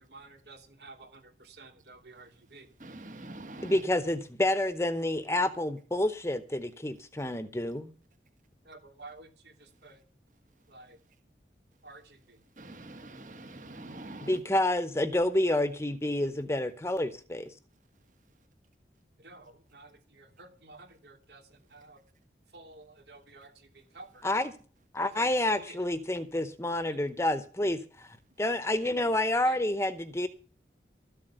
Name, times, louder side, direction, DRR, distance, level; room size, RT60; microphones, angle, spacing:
voice 1, 0.0-2.7 8.6-10.0 10.7-11.0 11.8-12.4 19.2-22.0 22.5-24.5 25.0-25.9 26.8-27.0 29.4-29.6, right 3 dB, 75° right, 2.9 m, -52 dB
voice 2, 2.8-3.8 9.7-9.8 10.5-10.7 12.5-14.4 18.1-18.5, right 2 dB, 45° right, 1.5 m, -46 dB
voice 3, 3.6-7.9 14.2-17.5 24.2-24.5 24.9-30.3, left 1 dB, 15° left, 0.8 m, -29 dB
13.5 x 7.5 x 8.0 m
head